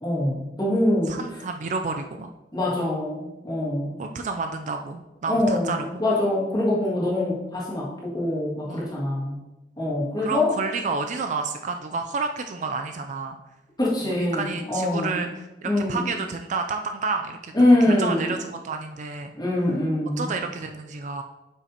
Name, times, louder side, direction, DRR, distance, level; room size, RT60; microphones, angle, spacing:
voice 1, 0.0-1.2 2.5-4.0 5.3-9.4 9.8-10.5 13.8-15.3 15.6-16.1 17.5-18.4 19.4-20.3, left 1 dB, 25° left, -7 dB, 2.1 m, -24 dB
voice 2, 1.1-2.3 4.0-6.0 8.6-9.0 10.2-13.4 14.0-19.3 20.2-21.2, right 4 dB, 45° right, 5 dB, 0.4 m, -30 dB
8.1 x 5.8 x 2.9 m, 1.0 s
head